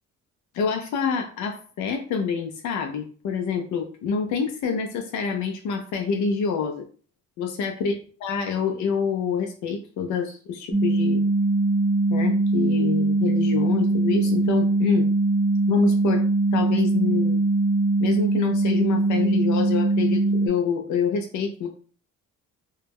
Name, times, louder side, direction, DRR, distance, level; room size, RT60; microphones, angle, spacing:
voice 1, 0.5-6.9 7.4-7.9 8.2-11.2 12.1-15.1 15.7-16.2 16.5-17.4 18.0-21.7, left 5 dB, 70° left, 3 dB, 0.5 m, -27 dB
sound 1, 10.7-20.5, right 2 dB, 15° right, 0.5 m, -21 dB
2.2 x 2.0 x 3.3 m, 0.41 s
cardioid pair, 90°, 30 cm